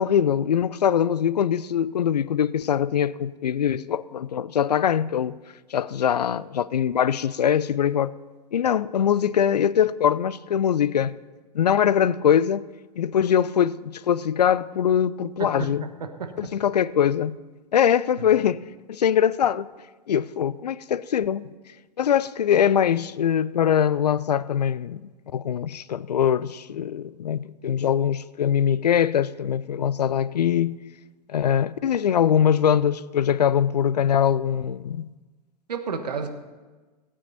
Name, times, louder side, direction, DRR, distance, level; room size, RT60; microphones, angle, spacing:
voice 1, 0.0-5.4 5.7-8.1 8.5-11.2 11.5-12.6 13.0-15.8 16.4-17.4 17.7-18.6 18.9-19.7 20.1-21.5 22.0-30.8 31.3-35.1, left 9 dB, 75° left, 0.5 m, -22 dB
voice 2, 15.4-16.5 18.2-18.3 35.7-36.3, right 5 dB, 75° right, 1.3 m, -32 dB
17.0 x 8.8 x 4.1 m
figure-of-eight pair, 100°, 21 cm